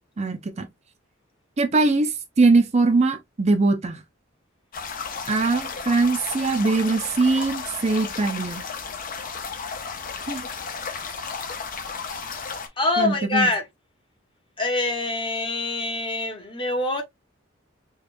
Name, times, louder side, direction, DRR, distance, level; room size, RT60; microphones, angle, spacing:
voice 1, 0.2-0.7 1.6-4.0 5.3-8.6 10.3-10.5 13.0-13.5, right 3 dB, 35° right, 0.5 m, -21 dB
sound 1, 4.7-12.7, left 5 dB, 45° left, 0.7 m, -33 dB
voice 2, 12.8-13.6 14.6-17.0, left 2 dB, 25° left, 1.0 m, -24 dB
5.0 x 2.4 x 2.5 m
head